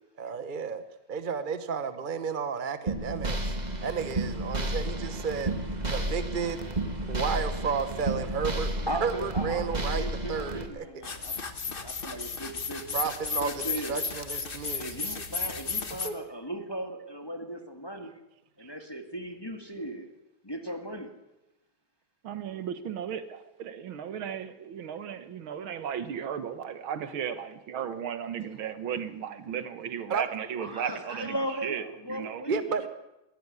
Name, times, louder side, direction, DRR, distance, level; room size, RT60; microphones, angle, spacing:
voice 1, 0.2-0.8 1.1-3.4 3.8-5.5 5.9-6.6 7.1-8.7 9.0-10.8 12.9-15.2 16.0-16.2 18.6-18.7 30.1-30.2 32.5-32.9, right 6 dB, 40° right, 11 dB, 0.8 m, -32 dB
sound 1, 2.9-10.7, right 1 dB, 20° right, 1.8 m, -32 dB
voice 2, 8.9-11.4 11.7-12.8 13.4-14.0 14.8-18.2 18.6-20.1 20.4-21.1 30.6-32.9, right 1 dB, 15° left, 5 dB, 1.5 m, -37 dB
sound 2, 11.0-16.1, left 5 dB, 30° left, 1.3 m, -34 dB
voice 3, 22.2-31.4 31.6-32.4, right 8 dB, 80° right, 12 dB, 2.1 m, -35 dB
21.0 x 13.0 x 9.7 m, 0.95 s
omnidirectional pair, 2.2 m